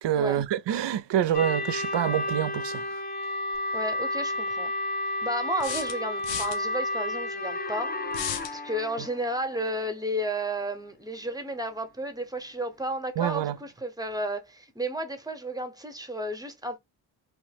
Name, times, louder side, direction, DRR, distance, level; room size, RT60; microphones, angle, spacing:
voice 1, 0.0-2.9 13.2-13.6, right 11 dB, 65° right, 0.5 m, -26 dB
sound 1, 1.3-9.4, left 2 dB, 20° left, 0.4 m, -31 dB
sound 2, 3.5-3.6 5.6-6.6 8.1-8.5, left 8 dB, 70° left, 0.7 m, -34 dB
voice 2, 3.7-4.7 5.2-8.0 8.5-16.8, right 1 dB, 10° right, 0.7 m, -32 dB
3.0 x 2.1 x 3.3 m
cardioid pair, 95°, 47 cm